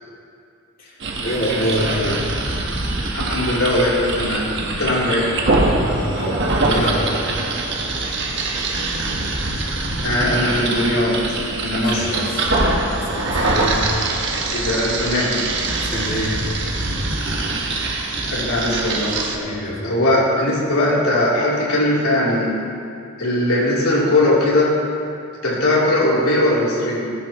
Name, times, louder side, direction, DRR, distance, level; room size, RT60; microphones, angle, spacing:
sound 1, 1.0-19.4, right 2 dB, 50° right, 1.3 m, -23 dB
voice 1, 1.2-2.2 5.6-7.3 11.7-12.4 12.9-13.8 15.8-16.3 19.3-20.0, equal, 40° left, -5 dB, 2.8 m, -26 dB
voice 2, 3.1-5.3 10.0-11.2 11.6-12.3 14.5-15.3 18.3-19.2 19.8-22.5 23.2-24.7 25.4-27.1, left 1 dB, 80° left, -6 dB, 3.4 m, -19 dB
20.0 x 10.5 x 3.1 m, 2.5 s
head